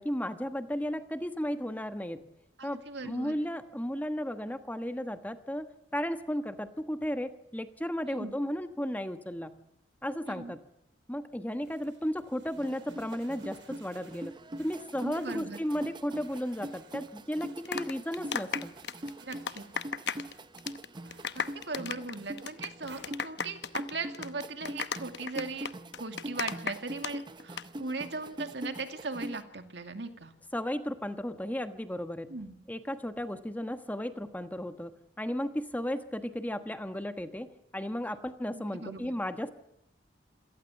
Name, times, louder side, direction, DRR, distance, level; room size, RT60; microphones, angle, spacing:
voice 1, 0.0-2.2 2.6-5.7 5.9-9.5 10.0-10.6 11.1-18.7 30.5-32.3 32.7-34.9 35.2-39.5, equal, 10° left, 9 dB, 1.2 m, -34 dB
voice 2, 2.6-3.4 8.1-8.3 10.2-10.5 15.0-15.6 19.2-19.6 21.3-25.7 26.0-30.3 32.3-32.6 38.5-39.1, right 3 dB, 70° right, 7 dB, 2.3 m, -39 dB
sound 1, 11.5-23.9, right 4 dB, 85° right, 6.8 m, -60 dB
sound 2, 12.6-29.4, right 1 dB, 25° right, 0.8 m, -43 dB
sound 3, 17.4-20.3 20.6-20.9 21.1-27.1 27.4-27.6, left 6 dB, 65° left, 1.0 m, -35 dB
27.0 x 18.0 x 7.2 m, 0.82 s
head